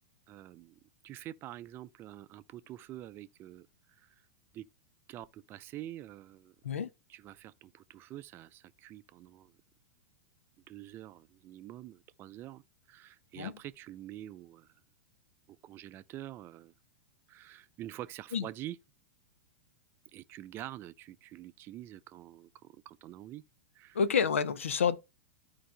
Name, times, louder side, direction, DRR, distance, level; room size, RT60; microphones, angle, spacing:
voice 1, 0.3-4.1 4.5-4.7 5.1-6.6 7.1-9.5 10.7-12.6 12.9-14.7 15.5-16.7 17.3-18.8 20.1-23.4 23.7-24.0, right 13 dB, 35° right, 0.5 m, -46 dB
voice 2, 23.9-25.0, left 6 dB, 75° left, 0.8 m, -28 dB
13.5 x 4.8 x 2.2 m
hypercardioid pair, 100°, 7 cm